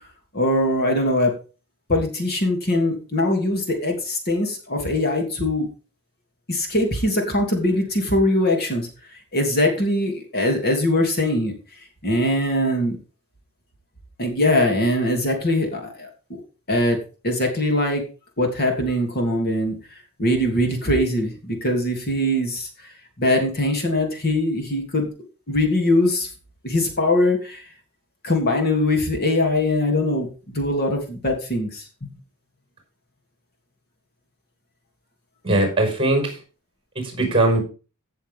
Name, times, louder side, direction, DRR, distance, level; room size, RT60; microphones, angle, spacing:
voice 1, 0.3-1.3 1.9-5.7 6.5-8.9 9.3-11.5 12.0-13.0 14.2-16.1 16.7-17.0 17.2-18.0 18.4-19.8 20.2-22.7 23.2-25.1 25.5-26.3 26.6-27.6 28.2-32.1, left 1 dB, 45° left, 2 dB, 3.0 m, -21 dB
voice 2, 35.4-36.3 36.9-37.6, right 2 dB, 25° right, 4 dB, 5.2 m, -20 dB
16.0 x 7.0 x 3.7 m, 0.34 s
head